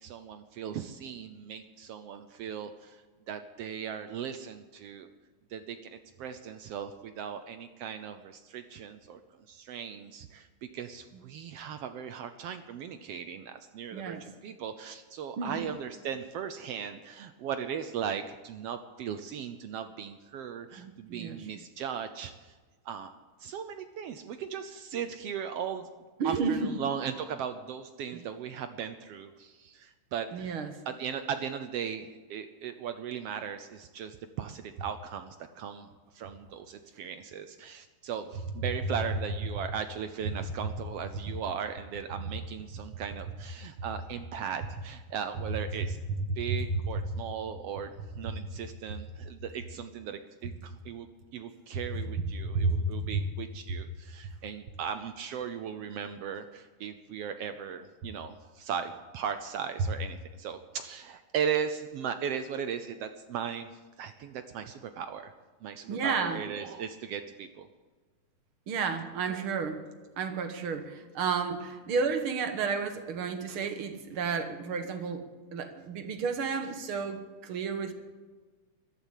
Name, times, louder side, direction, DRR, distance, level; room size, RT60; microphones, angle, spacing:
voice 1, 0.0-5.1 5.5-9.2 9.5-22.5 22.8-23.1 23.4-25.9 26.2-30.5 30.9-35.9 36.1-46.0 46.4-63.7 64.0-65.3 65.6-67.7 69.4-69.5, right 8 dB, 75° right, 10 dB, 1.5 m, -38 dB
voice 2, 13.9-14.2 15.4-15.7 20.8-21.5 26.2-26.7 28.1-28.2 30.3-30.8 46.3-46.8 52.5-53.2 65.9-66.4 68.7-69.8 70.2-75.2 75.5-77.9, right 4 dB, 55° right, 8 dB, 1.8 m, -31 dB
14.0 x 12.5 x 8.1 m, 1.4 s
omnidirectional pair, 3.5 m